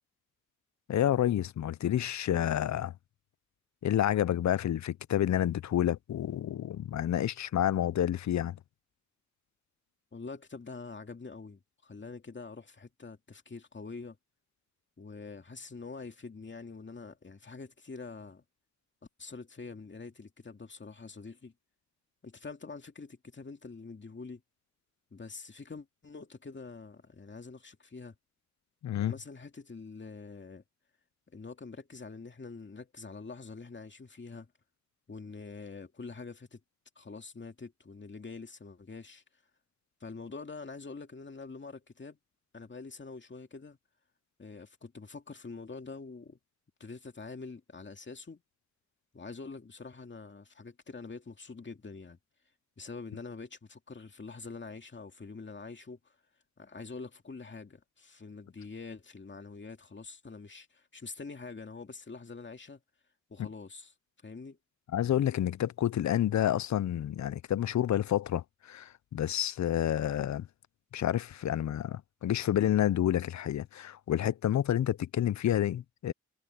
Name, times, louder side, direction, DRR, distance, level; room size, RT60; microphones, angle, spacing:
voice 1, 0.9-2.9 3.8-8.6 28.8-29.1 63.4-63.5 64.9-70.5 70.9-76.1, left 11 dB, 70° left, 0.5 m, -29 dB
voice 2, 10.1-14.2 15.0-18.4 19.2-21.5 22.2-24.4 25.1-28.1 29.0-30.6 31.3-34.5 35.1-36.6 37.0-39.2 40.0-42.2 42.5-43.8 44.4-46.4 46.8-48.4 49.1-52.2 52.8-56.2 56.6-62.8 63.3-63.9 64.2-64.6, left 4 dB, 40° left, 2.4 m, -45 dB
cardioid pair, 75°, 29 cm